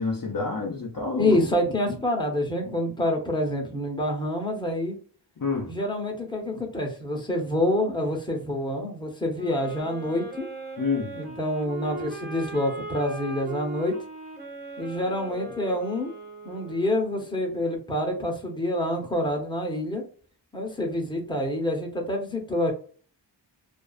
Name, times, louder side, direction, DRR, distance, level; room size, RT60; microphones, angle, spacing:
voice 1, 0.0-1.3 5.4-5.7 10.8-11.1, left 4 dB, 50° left, 0.6 m, -28 dB
voice 2, 1.2-5.0 5.7-10.5 11.1-14.0 14.8-16.1 16.4-20.0 20.5-22.7, left 1 dB, 10° left, 0.8 m, -27 dB
sound 1, 9.3-17.1, right 2 dB, 20° right, 1.0 m, -39 dB
2.5 x 2.3 x 2.3 m
wide cardioid pair, 80°, 45 cm